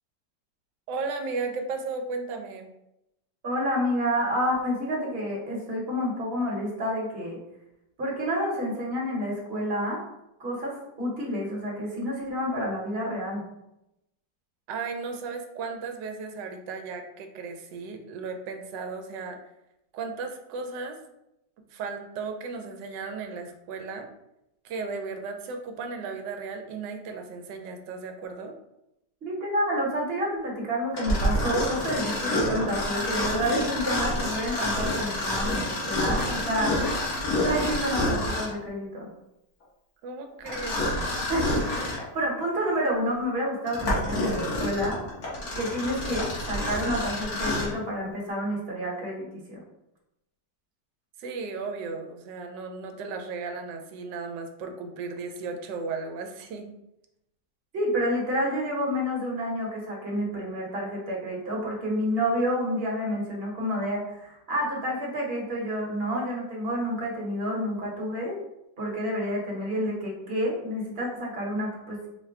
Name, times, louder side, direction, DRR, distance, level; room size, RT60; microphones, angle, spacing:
voice 1, 0.9-2.7 14.7-19.4 19.9-21.0 21.6-24.1 24.6-28.5 40.0-40.9 51.2-56.8, right 4 dB, 80° right, 5 dB, 1.2 m, -35 dB
voice 2, 3.4-7.4 8.0-10.0 10.4-13.4 29.2-37.0 37.4-39.1 41.3-45.0 45.5-49.6 57.7-68.4 68.8-72.1, equal, 40° right, -3 dB, 1.1 m, -29 dB
Mechanisms, 30.9-38.6 40.5-42.1 42.6-42.7 43.4-47.8, left 1 dB, 60° left, 1.7 m, -28 dB
4.5 x 2.2 x 3.5 m, 0.86 s
omnidirectional pair, 1.9 m